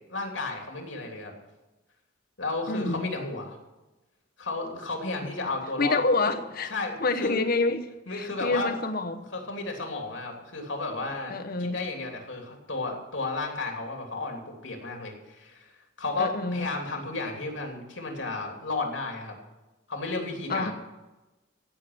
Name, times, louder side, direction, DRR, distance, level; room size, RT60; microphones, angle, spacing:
voice 1, 0.1-1.3 2.4-3.6 4.4-6.0 6.7-7.4 8.1-8.7 9.3-15.7 16.0-19.4 19.9-20.7, left 3 dB, 75° left, 3.1 m, -33 dB
voice 2, 2.7-3.1 5.8-6.7 7.0-9.2 11.3-11.8 16.2-16.7 20.5-20.7, left 3 dB, 55° left, 1.1 m, -27 dB
15.5 x 6.2 x 9.6 m
head